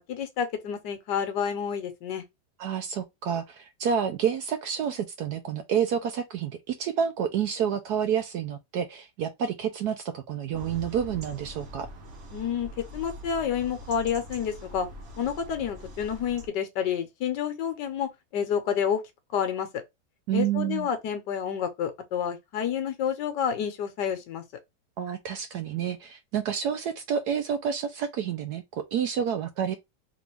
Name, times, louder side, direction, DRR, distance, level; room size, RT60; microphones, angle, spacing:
voice 1, 0.1-2.2 12.3-14.9 15.2-19.0 19.3-19.7 20.3-24.4, left 8 dB, 65° left, 1.3 m, -29 dB
voice 2, 2.6-11.9 20.3-20.9 25.0-29.8, right 8 dB, 70° right, 1.0 m, -29 dB
sound 1, 10.5-16.5, equal, 45° right, 1.1 m, -43 dB
3.7 x 3.0 x 3.2 m
omnidirectional pair, 2.1 m